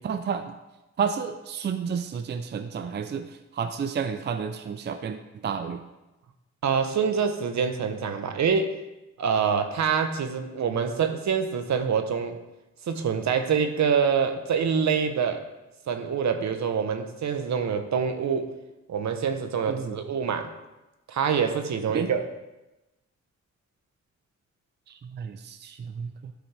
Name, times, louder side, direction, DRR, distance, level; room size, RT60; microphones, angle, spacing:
voice 1, 0.0-0.5 1.0-5.8 19.7-20.0 21.9-22.1 24.9-26.1, right 6 dB, 35° right, 8 dB, 0.4 m, -31 dB
voice 2, 6.6-8.8 9.2-12.4 12.9-15.4 15.9-18.5 18.9-20.5 21.1-22.3, right 6 dB, 70° right, 7 dB, 0.9 m, -25 dB
12.5 x 5.1 x 3.3 m, 1.0 s
wide cardioid pair, 125°, 29 cm